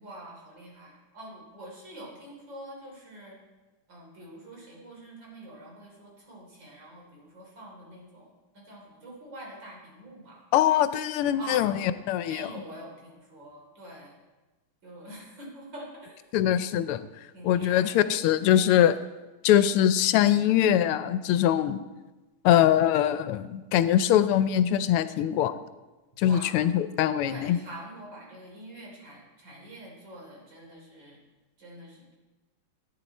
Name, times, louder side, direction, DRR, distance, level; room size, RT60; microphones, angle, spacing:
voice 1, 0.0-3.4 3.9-10.4 11.4-12.0 12.2-14.1 14.8-16.2 17.3-18.0 26.2-26.6 27.2-31.2 31.6-32.1, right 1 dB, 55° right, -2 dB, 3.8 m, -45 dB
voice 2, 10.5-12.5 16.3-17.1 17.4-18.9 19.4-21.8 22.4-25.5 26.2-27.6, left 11 dB, 85° left, 13 dB, 1.5 m, -22 dB
14.0 x 9.2 x 4.1 m, 1.2 s
omnidirectional pair, 2.4 m